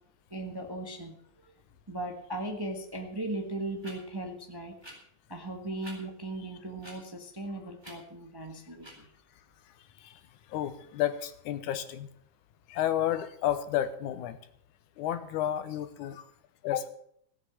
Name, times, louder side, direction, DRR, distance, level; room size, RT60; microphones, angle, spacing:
voice 1, 0.3-1.2 1.4-1.5 1.9-4.8 5.3-9.1, right 2 dB, 35° right, 3 dB, 0.3 m, -38 dB
sound 1, 2.9-3.0 3.8-3.9 4.8-4.9 5.8-6.0 6.8-7.0 7.8-8.0 8.8-8.9, equal, 10° right, 3.7 m, -47 dB
voice 2, 10.5-12.1 12.7-14.4 15.0-16.3 16.6-16.9, left 11 dB, 90° left, 11 dB, 2.4 m, -31 dB
16.5 x 8.2 x 7.2 m, 0.68 s
omnidirectional pair, 3.4 m